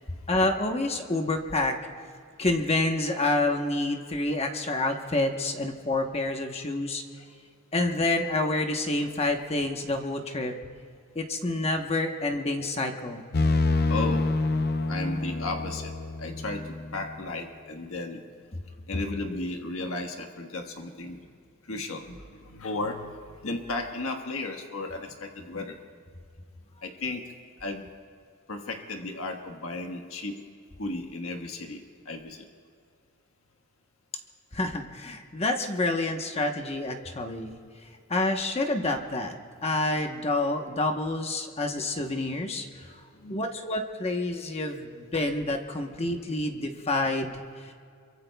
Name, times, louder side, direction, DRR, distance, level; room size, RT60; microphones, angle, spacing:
voice 1, 0.3-1.8 2.4-7.0 7.7-10.5 11.1-13.2 18.5-18.6 18.9-19.0 34.5-37.5 38.1-39.4 39.6-43.0 43.3-47.7, left 2 dB, 30° left, 4 dB, 1.0 m, -28 dB
sound 1, 13.3-17.1, left 2 dB, 50° left, 0.6 m, -27 dB
voice 2, 13.9-14.3 14.9-15.9 16.2-18.2 18.9-21.2 21.6-25.8 26.8-27.2 27.6-27.9 28.5-30.4 30.8-32.5 43.1-43.5, left 2 dB, 90° left, 4 dB, 1.4 m, -34 dB
27.5 x 23.0 x 2.3 m, 2.2 s
head